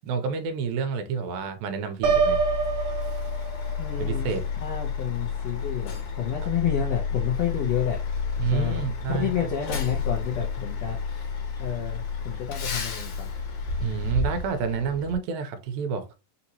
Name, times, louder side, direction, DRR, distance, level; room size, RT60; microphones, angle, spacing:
voice 1, 0.0-2.4 4.0-4.4 6.4-6.5 8.4-9.3 13.8-16.1, right 6 dB, 85° right, 2.4 m, -29 dB
Truck, 2.0-15.2, left 5 dB, 65° left, 2.0 m, -31 dB
Piano, 2.0-3.9, right 6 dB, 65° right, 2.5 m, -25 dB
voice 2, 3.8-8.0 8.4-11.3 11.6-13.3, left 9 dB, 85° left, 1.4 m, -30 dB
5.7 x 2.8 x 2.8 m
omnidirectional pair, 4.1 m